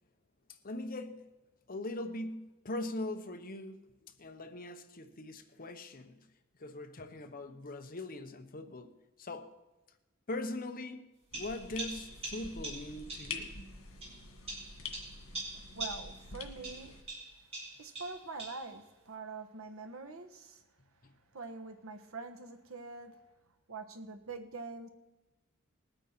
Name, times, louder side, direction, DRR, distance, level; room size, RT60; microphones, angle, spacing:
voice 1, 0.5-1.3 1.7-6.3 6.6-8.9 9.2-9.6 10.3-13.5 21.0-21.1, left 2 dB, 45° left, 1.0 m, -41 dB
sound 1, 11.3-17.0, left 4 dB, 80° left, 2.1 m, -47 dB
sound 2, 11.3-13.4 14.0-16.3 16.6-18.7, right 2 dB, 30° right, 4.3 m, -43 dB
voice 2, 15.5-17.0 17.8-20.6 21.3-23.1 23.7-24.9, right 4 dB, 80° right, 1.3 m, -44 dB
20.5 x 9.0 x 4.5 m
head